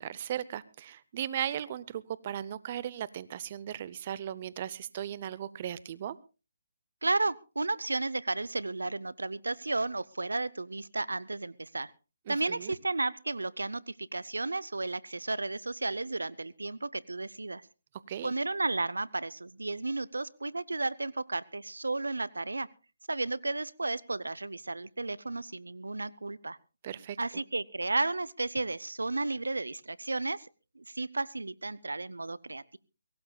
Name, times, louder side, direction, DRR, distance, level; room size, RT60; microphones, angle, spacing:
voice 1, 0.0-6.2 12.3-12.7 18.1-18.3 26.8-27.2, right 10 dB, 40° right, 19 dB, 0.7 m, -37 dB
voice 2, 7.0-11.9 12.3-17.7 18.2-22.7 23.1-26.6 27.2-30.5 30.8-32.8, right 2 dB, 85° right, 20 dB, 0.6 m, -33 dB
23.0 x 17.5 x 2.3 m, 0.32 s
figure-of-eight pair, 145°, 0 cm